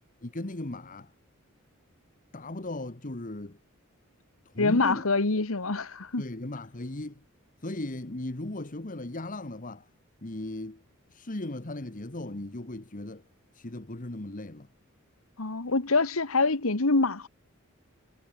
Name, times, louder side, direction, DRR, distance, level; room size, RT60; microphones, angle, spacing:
voice 1, 0.2-1.1 2.3-3.6 4.4-5.1 6.2-7.2 7.6-9.9 10.2-10.8 11.1-13.2 13.5-14.7, left 1 dB, 40° left, 1.5 m, -37 dB
voice 2, 4.6-6.2 15.4-17.3, left 3 dB, 85° left, 1.6 m, -25 dB
head